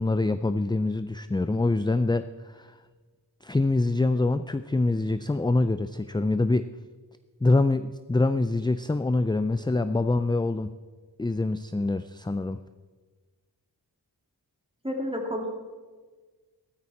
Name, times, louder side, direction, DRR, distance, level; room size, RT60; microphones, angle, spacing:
voice 1, 0.0-2.8 3.4-6.6 7.4-10.7 11.2-12.6, left 2 dB, 10° left, 11 dB, 0.3 m, -25 dB
voice 2, 14.8-15.5, equal, 15° right, 1 dB, 2.6 m, -30 dB
14.0 x 13.5 x 4.2 m, 1.4 s
wide cardioid pair, 45°, 42 cm